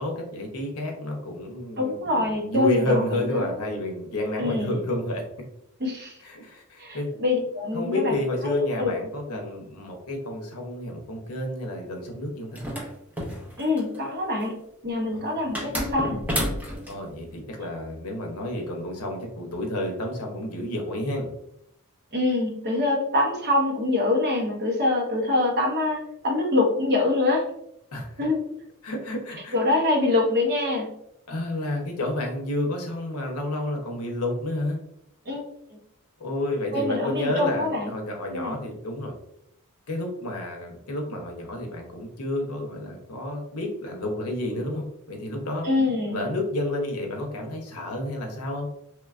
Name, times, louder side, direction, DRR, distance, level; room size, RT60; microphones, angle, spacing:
voice 1, 0.0-5.2 6.2-7.1 7.7-12.7 15.1-15.3 16.9-21.3 27.9-28.2 28.8-29.5 31.3-34.8 36.2-39.1 39.9-48.7, left 1 dB, 75° left, 2 dB, 0.7 m, -30 dB
voice 2, 1.8-3.5 4.4-4.7 5.8-6.2 6.8-8.1 8.4-8.9 13.6-14.5 14.8-16.2 22.1-27.5 28.2-28.5 29.5-30.9 35.3-35.4 36.7-37.9 38.3-38.6 45.6-46.3, left 2 dB, 45° right, -1 dB, 0.7 m, -25 dB
sound 1, 12.5-14.0 15.6-17.0, equal, 5° right, 0.5 m, -30 dB
3.0 x 2.2 x 2.3 m, 0.77 s
head